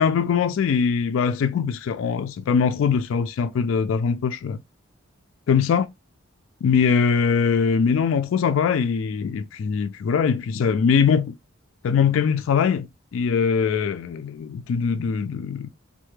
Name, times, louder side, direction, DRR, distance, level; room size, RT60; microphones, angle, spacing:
voice 1, 0.0-4.6 5.5-5.9 6.6-11.4 11.8-15.7, left 6 dB, 70° left, 0.3 m, -22 dB
3.2 x 2.1 x 3.2 m
head